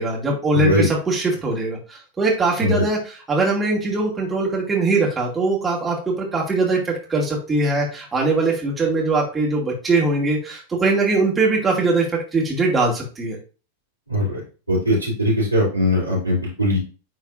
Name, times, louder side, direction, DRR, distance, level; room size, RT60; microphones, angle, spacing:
voice 1, 0.0-13.4, right 3 dB, 15° right, -3 dB, 2.1 m, -21 dB
voice 2, 0.5-0.9 2.6-2.8 14.1-14.4 14.7-16.8, left 1 dB, 85° right, -4 dB, 3.0 m, -20 dB
9.5 x 4.0 x 2.5 m, 0.35 s
figure-of-eight pair, 90°, 0 cm